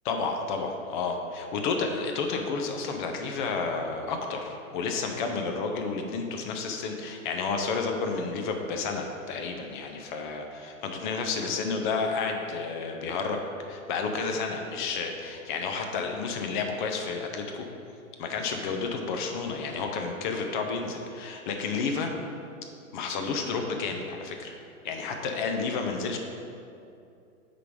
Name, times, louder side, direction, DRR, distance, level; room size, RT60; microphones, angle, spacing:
voice 1, 0.0-13.4 13.7-17.7 18.2-22.1 22.9-24.5 24.8-26.2, left 4 dB, 35° left, 4 dB, 0.7 m, -31 dB
6.6 x 3.9 x 5.0 m, 2.5 s
hypercardioid pair, 125°, 43 cm